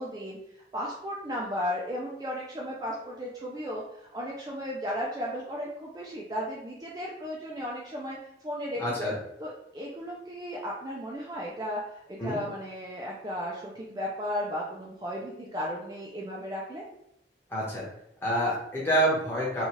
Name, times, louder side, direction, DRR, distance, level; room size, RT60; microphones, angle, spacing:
voice 1, 0.0-8.2 8.4-9.1 9.4-16.8, equal, 20° right, -4 dB, 0.3 m, -35 dB
voice 2, 8.8-9.2 12.2-12.4 17.5-17.8 18.2-19.6, right 1 dB, 15° left, -7 dB, 0.9 m, -27 dB
2.8 x 2.3 x 2.9 m, 0.78 s
head